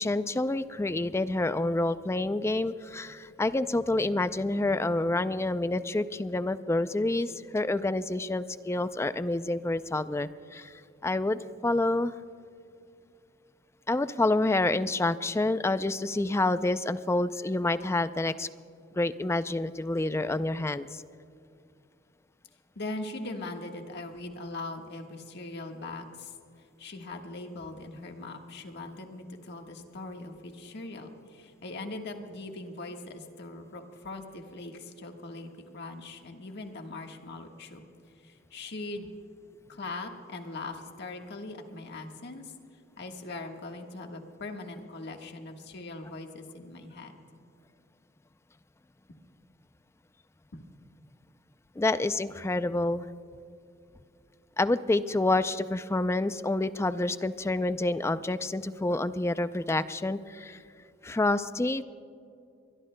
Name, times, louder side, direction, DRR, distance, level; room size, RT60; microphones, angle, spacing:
voice 1, 0.0-12.1 13.9-18.5 19.0-21.0 51.8-53.1 54.6-60.6 61.0-61.8, left 2 dB, 15° left, 13 dB, 0.3 m, -28 dB
voice 2, 22.7-26.3 26.8-37.8 38.2-39.1 39.7-42.5 43.0-47.2 50.5-50.6, left 2 dB, 55° left, 3 dB, 1.4 m, -40 dB
23.5 x 21.5 x 2.2 m, 2.5 s
head